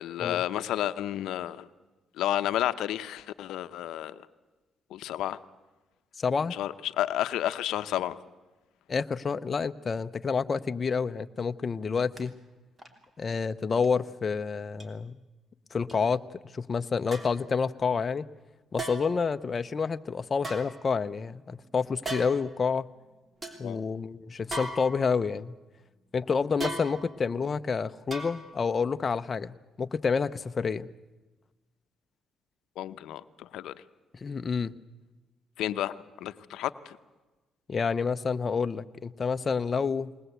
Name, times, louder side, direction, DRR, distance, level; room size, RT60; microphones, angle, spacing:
voice 1, 0.0-1.7 2.2-4.2 4.9-5.4 6.5-8.2 23.6-23.8 32.8-33.7 35.6-36.0 36.2-37.0, left 12 dB, 85° left, 12 dB, 0.7 m, -31 dB
voice 2, 6.2-6.5 8.9-12.4 13.2-15.2 15.7-16.2 16.5-18.3 18.7-22.9 23.6-25.6 26.1-30.9 34.2-34.8 37.7-40.1, left 5 dB, 40° left, 9 dB, 0.6 m, -29 dB
sound 1, 12.2-12.3 12.8-13.0 13.8-13.9 14.8-14.9 15.9-16.0 17.1-17.5 18.8-19.3 20.4-21.3 22.0-22.5 23.0-23.1 23.4-23.6 24.5-25.3 26.6-27.3 28.1-28.7 29.0-29.1, right 2 dB, 30° right, 3.2 m, -38 dB
21.0 x 19.5 x 8.0 m, 1.2 s
cardioid pair, 90°, 0 cm